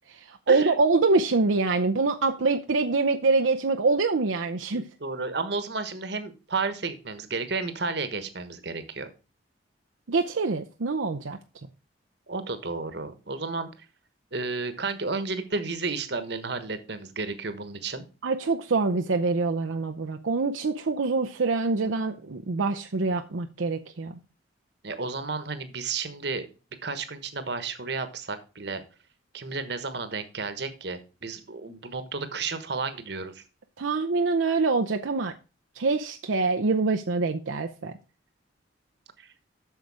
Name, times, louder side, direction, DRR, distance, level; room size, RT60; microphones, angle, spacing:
voice 1, 0.1-4.8 10.1-11.4 18.2-24.2 33.8-35.3 35.8-38.0, right 3 dB, 80° right, 0.7 m, -25 dB
voice 2, 4.7-9.1 12.3-13.7 14.3-18.0 24.8-26.5 26.8-28.8 29.3-33.4 39.2-39.3, right 4 dB, 60° right, 1.2 m, -32 dB
8.2 x 6.6 x 4.8 m
head